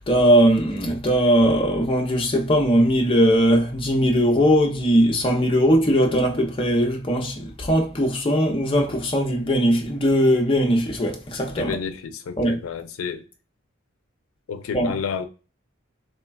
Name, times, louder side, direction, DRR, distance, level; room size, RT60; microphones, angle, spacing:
voice 1, 0.1-11.8 12.4-12.6 14.7-14.9, equal, 25° left, 0.5 m, -19 dB
voice 2, 11.6-13.2 14.5-15.2, left 6 dB, 90° left, 0.4 m, -30 dB
3.2 x 2.2 x 2.2 m
head